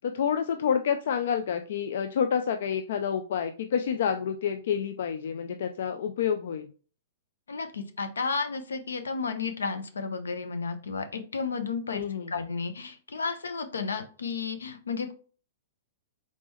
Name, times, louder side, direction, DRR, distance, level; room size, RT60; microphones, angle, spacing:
voice 1, 0.0-6.7 11.9-12.3, left 7 dB, 65° left, 7 dB, 0.4 m, -28 dB
voice 2, 7.5-12.0 12.3-15.1, left 4 dB, 90° left, 8 dB, 0.8 m, -32 dB
4.1 x 3.6 x 3.0 m, 0.39 s
hypercardioid pair, 125°, 0 cm